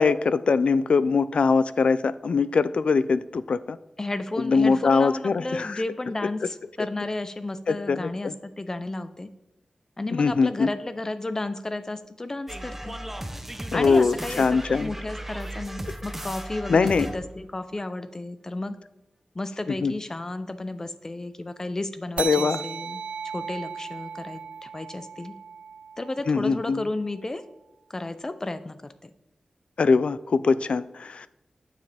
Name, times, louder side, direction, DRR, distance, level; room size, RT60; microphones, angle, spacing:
voice 1, 0.0-3.8 4.4-5.8 7.7-8.3 10.1-10.7 13.7-14.9 16.7-17.1 19.8-19.9 22.2-22.6 26.3-26.9 29.8-31.3, left 4 dB, 70° left, 15 dB, 0.4 m, -22 dB
voice 2, 4.0-9.3 10.0-12.9 13.7-18.8 19.3-23.0 23.3-25.3 26.0-27.4 27.9-29.1, left 2 dB, 25° left, 11 dB, 0.6 m, -33 dB
sound 1, 12.5-17.4, right 1 dB, 10° right, 0.7 m, -36 dB
sound 2, 22.2-27.1, right 6 dB, 75° right, 0.4 m, -37 dB
9.1 x 7.4 x 3.4 m, 0.89 s
wide cardioid pair, 110°, 2 cm